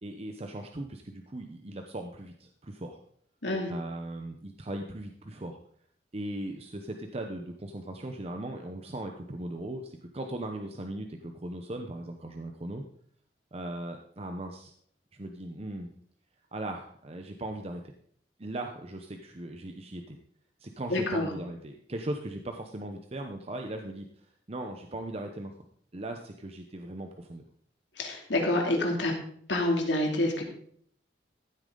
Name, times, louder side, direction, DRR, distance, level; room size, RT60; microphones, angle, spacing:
voice 1, 0.0-3.0 3.7-5.6 6.1-12.8 13.5-14.7 15.1-15.9 16.5-17.8 18.4-20.2 20.6-25.5 25.9-27.4, right 1 dB, 35° right, 4 dB, 0.8 m, -38 dB
voice 2, 20.9-21.3 28.0-29.1 29.5-30.4, left 1 dB, 85° left, 1 dB, 2.7 m, -27 dB
14.5 x 8.7 x 3.9 m, 0.63 s
head